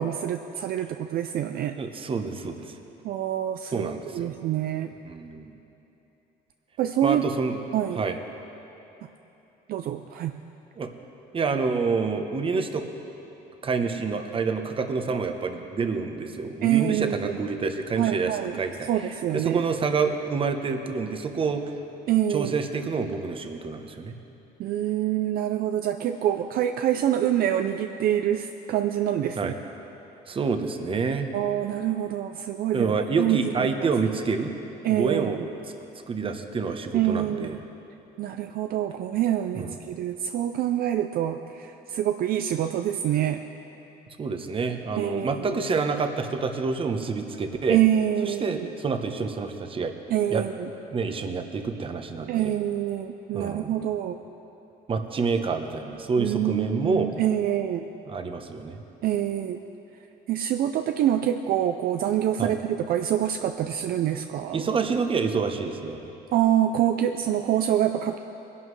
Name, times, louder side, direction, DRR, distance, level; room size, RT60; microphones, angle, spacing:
voice 1, 0.0-1.7 3.0-4.9 6.8-7.2 7.7-8.1 9.7-10.3 16.6-17.3 18.0-18.5 18.9-19.6 22.1-22.6 24.6-29.5 31.3-33.9 34.8-35.5 36.9-37.6 38.2-43.4 45.0-45.5 47.7-48.7 50.1-50.7 52.3-54.2 56.2-57.9 59.0-59.6 60.3-64.6 66.3-68.2, right 11 dB, 60° right, 7 dB, 0.4 m, -26 dB
voice 2, 1.7-2.8 3.7-4.4 5.0-5.6 7.0-7.6 7.9-8.2 10.8-10.9 11.3-12.8 13.6-21.6 22.3-24.2 29.4-29.5 30.3-31.3 32.7-34.5 34.9-35.4 36.1-37.6 39.5-39.8 44.2-47.8 48.2-49.9 50.3-50.5 50.9-52.5 53.3-53.8 54.9-57.1 58.1-58.8 62.4-62.5 64.5-66.0, right 4 dB, 30° right, 6 dB, 0.9 m, -28 dB
19.5 x 11.0 x 3.2 m, 3.0 s
cardioid pair, 110°, 17 cm